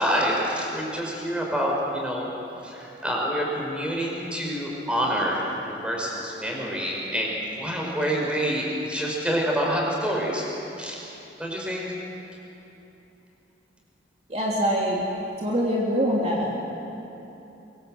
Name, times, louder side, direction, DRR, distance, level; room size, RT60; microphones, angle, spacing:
voice 1, 0.0-2.3 2.6-10.4 10.8-11.0 11.4-11.9, equal, 5° right, -2 dB, 5.0 m, -27 dB
voice 2, 14.3-15.0 15.4-16.5, equal, 35° right, -4 dB, 3.0 m, -24 dB
24.0 x 24.0 x 7.8 m, 3.0 s
head